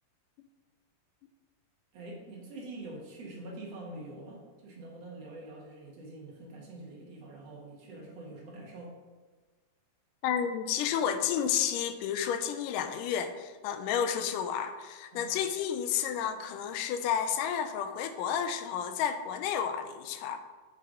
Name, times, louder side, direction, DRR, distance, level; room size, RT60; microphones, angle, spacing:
voice 1, 1.9-9.0 15.1-15.4, right 2 dB, 60° right, -2 dB, 2.1 m, -45 dB
voice 2, 10.2-20.4, left 8 dB, 85° left, 9 dB, 2.1 m, -31 dB
6.5 x 5.7 x 3.7 m, 1.4 s
omnidirectional pair, 3.8 m